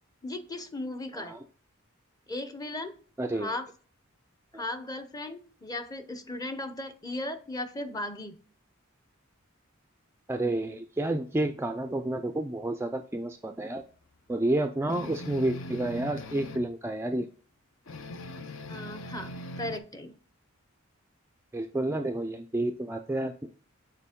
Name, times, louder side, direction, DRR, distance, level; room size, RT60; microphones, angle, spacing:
voice 1, 0.2-1.4 2.3-2.9 3.3-3.7 4.5-8.4 18.7-20.2, left 1 dB, 20° left, 9 dB, 0.7 m, -36 dB
voice 2, 3.2-3.6 4.5-4.6 10.3-13.8 14.3-17.3 21.5-23.5, right 1 dB, 10° right, 6 dB, 0.3 m, -30 dB
sound 1, 14.9-16.7 17.9-19.8, left 1 dB, 65° left, 0.6 m, -40 dB
6.7 x 4.4 x 3.6 m, 0.43 s
head